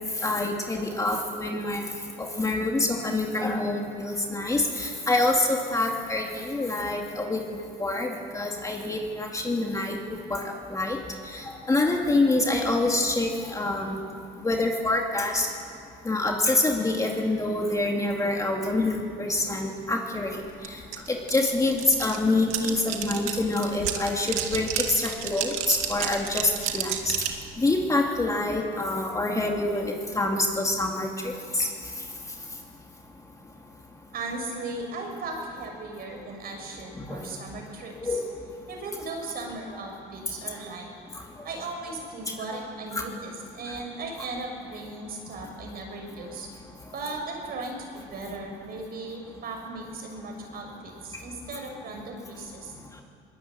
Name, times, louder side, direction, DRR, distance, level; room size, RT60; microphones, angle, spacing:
voice 1, 0.2-1.8 2.2-7.4 7.8-10.0 10.3-11.0 11.2-14.0 14.4-15.5 16.0-20.4 20.6-20.8 21.1-27.1 27.6-31.7 36.9-37.3 38.0-38.3 42.3-42.4 42.9-43.1, left 2 dB, 15° left, 1 dB, 2.6 m, -26 dB
sound 1, 20.6-20.7 20.9-27.4, right 10 dB, 80° right, 2.3 m, -31 dB
voice 2, 34.1-38.2 38.7-40.9 41.4-46.5 46.9-52.7, right 2 dB, 50° right, 2 dB, 6.6 m, -37 dB
22.0 x 21.0 x 8.9 m, 2.5 s
cardioid pair, 120°, 20 cm